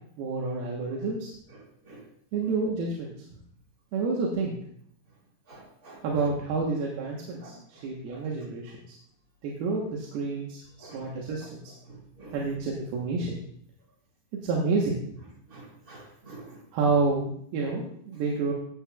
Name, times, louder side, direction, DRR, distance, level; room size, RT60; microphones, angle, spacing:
voice 1, 0.2-1.3 2.3-3.1 3.9-4.6 6.0-8.7 9.4-11.6 12.3-13.3 14.4-15.0 16.7-18.5, right 4 dB, 85° right, -3 dB, 3.2 m, -29 dB
voice 2, 5.5-6.0 7.4-7.5 8.1-8.2 10.8-11.0 11.9-12.3 15.5-16.6, right 2 dB, 30° right, -3 dB, 2.0 m, -48 dB
15.0 x 7.7 x 2.4 m, 0.66 s
omnidirectional pair, 4.4 m